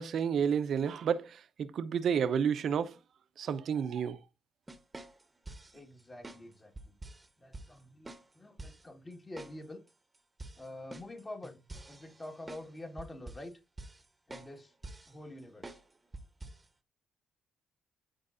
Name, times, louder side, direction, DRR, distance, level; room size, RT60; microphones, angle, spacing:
voice 1, 0.0-3.0 3.4-4.2, right 7 dB, 60° right, 0.9 m, -31 dB
sound 1, 4.7-5.8 6.2-6.4 6.8-7.3 7.5-7.7 8.1-8.3 8.6-8.8 9.4-9.6 9.9-10.0 10.4-12.7 13.0-13.5 13.8-14.1 14.3-14.5 14.8-15.1 15.6-15.8 16.1-16.6, right 2 dB, 20° right, 1.1 m, -47 dB
voice 2, 5.7-6.9 7.4-8.1 8.3-9.8 10.6-11.6 11.9-13.5 14.3-14.7 15.1-15.8, left 1 dB, 25° left, 1.9 m, -46 dB
13.0 x 4.6 x 2.7 m
cardioid pair, 90°, 0 cm